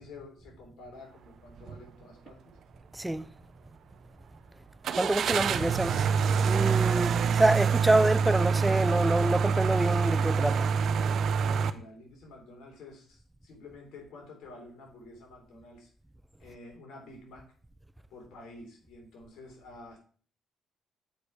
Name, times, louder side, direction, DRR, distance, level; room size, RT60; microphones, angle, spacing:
voice 1, 0.0-2.6 5.2-6.0 11.4-15.9 16.4-17.5 18.1-20.0, left 2 dB, 80° left, 3.3 m, -49 dB
sound 1, 1.6-1.8 2.3-2.4 4.8-11.7, right 6 dB, 65° right, 0.6 m, -26 dB
voice 2, 2.9-3.3 5.0-5.9 6.4-10.7, right 2 dB, 10° right, 0.5 m, -26 dB
7.7 x 5.2 x 4.8 m
cardioid pair, 90°, 0 cm